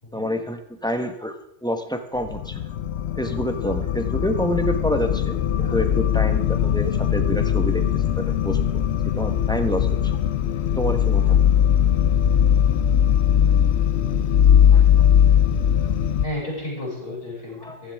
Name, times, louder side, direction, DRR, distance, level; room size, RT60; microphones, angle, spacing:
voice 1, 0.1-2.6 3.2-10.2 10.7-11.5 14.7-15.1 17.6-17.8, equal, 5° left, 6 dB, 1.1 m, -28 dB
sound 1, 2.2-16.3, left 9 dB, 75° left, 0.9 m, -20 dB
voice 2, 16.2-17.9, left 1 dB, 60° left, -6 dB, 6.8 m, -32 dB
15.5 x 14.5 x 3.6 m, 0.76 s
omnidirectional pair, 1.1 m